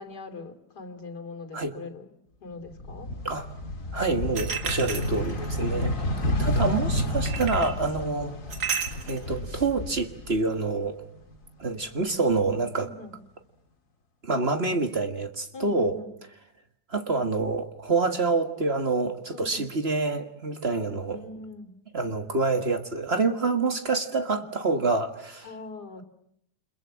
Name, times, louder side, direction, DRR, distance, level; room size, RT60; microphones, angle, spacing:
voice 1, 0.0-2.1 2.4-3.1 12.8-13.1 15.5-16.1 19.3-19.7 21.1-21.7 24.3-24.4 25.4-26.0, left 3 dB, 75° left, 6 dB, 3.3 m, -42 dB
sound 1, 2.7-10.8 11.1-12.3, left 1 dB, 50° left, 2.7 m, -30 dB
voice 2, 3.9-5.9 6.4-8.3 9.0-11.0 11.6-12.9 14.2-16.0 16.9-21.2 21.9-25.5, right 3 dB, 40° right, 7 dB, 1.8 m, -27 dB
sound 2, 4.3-5.5 7.2-7.8 8.5-9.2, right 6 dB, 70° right, 2.6 m, -32 dB
29.0 x 26.5 x 7.5 m, 0.76 s
omnidirectional pair, 1.8 m